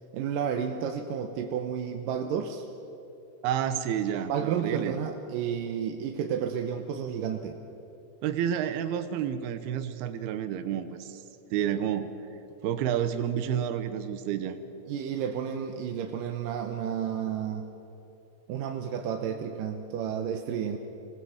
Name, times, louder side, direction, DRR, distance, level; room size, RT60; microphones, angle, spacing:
voice 1, 0.1-2.7 4.3-7.6 14.9-17.7 18.5-20.8, right 8 dB, 70° right, 4 dB, 2.4 m, -31 dB
voice 2, 3.4-5.0 8.2-11.2 11.5-12.1 12.6-14.6, right 9 dB, 90° right, 10 dB, 2.9 m, -30 dB
26.0 x 19.5 x 7.2 m, 2.9 s
omnidirectional pair, 4.4 m